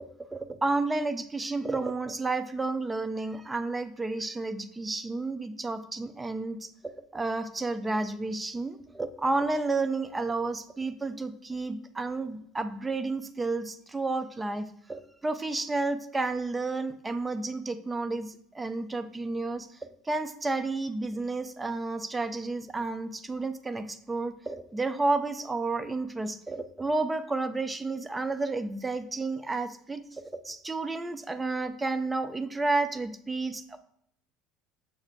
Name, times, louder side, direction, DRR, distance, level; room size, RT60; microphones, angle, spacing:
voice 1, 0.0-19.7 20.1-33.8, right 3 dB, 15° right, 11 dB, 0.3 m, -31 dB
6.4 x 2.4 x 3.1 m, 0.69 s
supercardioid pair, 110°, 0 cm